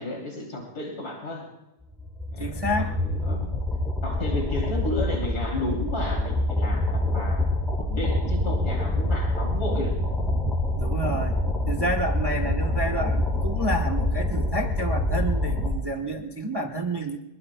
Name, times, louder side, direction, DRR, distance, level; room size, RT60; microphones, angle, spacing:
voice 1, 0.0-1.5 2.3-2.9 3.2-3.6 4.0-7.4 7.8-9.9, left 1 dB, 80° left, -1 dB, 3.6 m, -33 dB
sound 1, 1.9-15.7, left 1 dB, ahead, 7.1 m, -26 dB
voice 2, 2.4-2.9 10.7-11.4 11.7-17.2, right 1 dB, 20° right, 4 dB, 1.0 m, -29 dB
27.0 x 21.5 x 2.3 m, 1.0 s
omnidirectional pair, 1.6 m